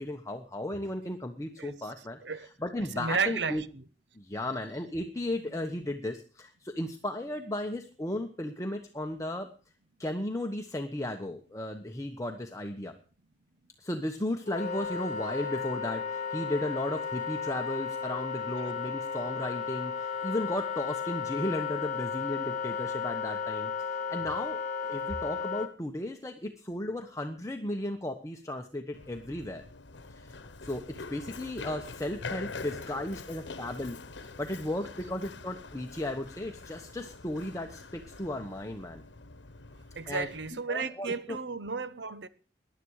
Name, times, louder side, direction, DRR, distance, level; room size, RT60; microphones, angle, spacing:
voice 1, 0.0-2.2 2.6-3.6 4.1-9.5 10.0-12.9 13.8-29.6 30.1-34.0 34.4-39.0 40.0-40.3 40.7-41.4, left 1 dB, 20° left, 1.2 m, -35 dB
voice 2, 2.9-3.6 18.6-18.7 40.0-42.3, right 5 dB, 75° right, 1.0 m, -33 dB
Wind instrument woodwind instrument, 14.5-25.7, left 6 dB, 45° left, 1.4 m, -34 dB
Run, 28.9-40.5, left 3 dB, 85° left, 1.1 m, -45 dB
19.0 x 11.5 x 4.9 m
head